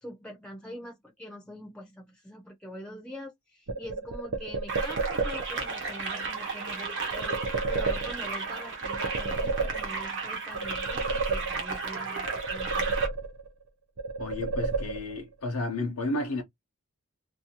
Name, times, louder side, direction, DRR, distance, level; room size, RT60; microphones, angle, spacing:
voice 1, 0.0-13.0, equal, 5° left, 0.5 m, -44 dB
sound 1, 3.7-5.7 7.1-8.5 8.8-10.2 10.5-11.9 12.3-13.6 14.0-15.3, right 4 dB, 90° right, 0.6 m, -31 dB
sound 2, 4.7-13.1, right 4 dB, 55° right, 1.0 m, -34 dB
voice 2, 14.2-16.4, left 2 dB, 85° left, 0.7 m, -32 dB
2.6 x 2.3 x 2.7 m
head